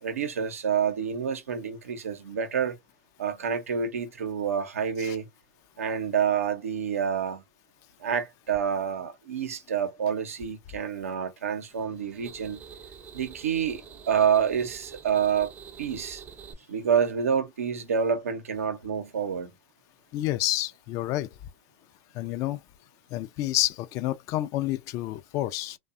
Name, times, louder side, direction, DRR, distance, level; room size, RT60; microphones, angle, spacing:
voice 1, 0.0-2.8 3.2-5.3 5.8-7.4 8.0-12.6 13.1-15.5 15.8-16.2 16.7-19.5, right 7 dB, 90° right, 0.6 m, -28 dB
sound 1, 11.7-16.5, right 7 dB, 20° right, 0.5 m, -47 dB
voice 2, 20.1-21.3 22.1-22.6 23.1-25.8, left 15 dB, 45° left, 0.4 m, -29 dB
2.6 x 2.2 x 2.4 m
hypercardioid pair, 105°, 7 cm